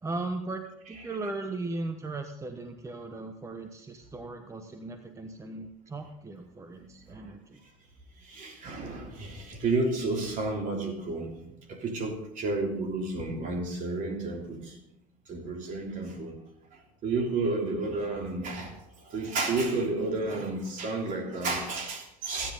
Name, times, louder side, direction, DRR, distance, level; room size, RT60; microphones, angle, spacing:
voice 1, 0.0-7.6, right 2 dB, 15° right, 6 dB, 1.1 m, -37 dB
voice 2, 6.7-7.3 8.2-14.8 15.3-16.4 16.7-22.5, right 3 dB, 50° right, 2 dB, 3.2 m, -32 dB
15.0 x 10.0 x 4.0 m, 0.80 s
supercardioid pair, 85°, 17 cm